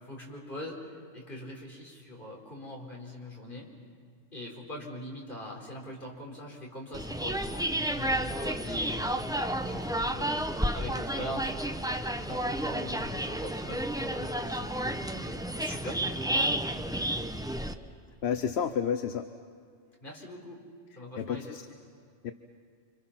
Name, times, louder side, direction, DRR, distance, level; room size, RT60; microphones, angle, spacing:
voice 1, 0.0-3.7 4.3-9.1 9.6-10.4 10.7-16.6 20.0-20.6 20.9-21.6, left 1 dB, 45° left, -2 dB, 4.7 m, -42 dB
sound 1, 6.9-17.7, right 1 dB, 5° right, 0.7 m, -31 dB
voice 2, 18.2-19.3 21.2-21.6 22.2-22.3, left 7 dB, 65° left, 9 dB, 1.0 m, -30 dB
29.5 x 26.0 x 5.9 m, 2.3 s
omnidirectional pair, 1.2 m